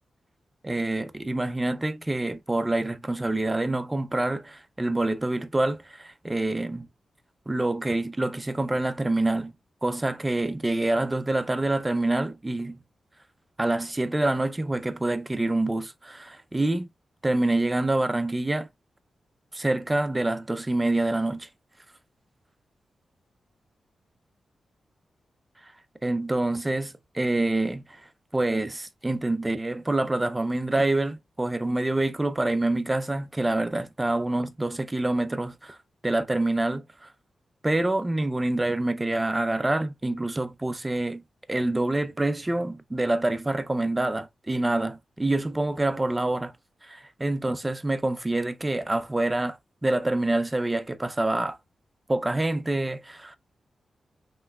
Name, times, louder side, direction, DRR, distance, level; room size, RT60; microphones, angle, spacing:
voice 1, 0.6-6.9 7.5-9.5 9.8-12.8 13.6-16.9 17.2-18.7 19.5-21.5 25.6-25.7 26.0-35.8 36.0-37.1 37.6-41.2 41.5-46.5 46.8-51.6 52.1-53.4, right 2 dB, 15° right, 0.4 m, -26 dB
5.6 x 3.1 x 2.3 m
wide cardioid pair, 165°, 0 cm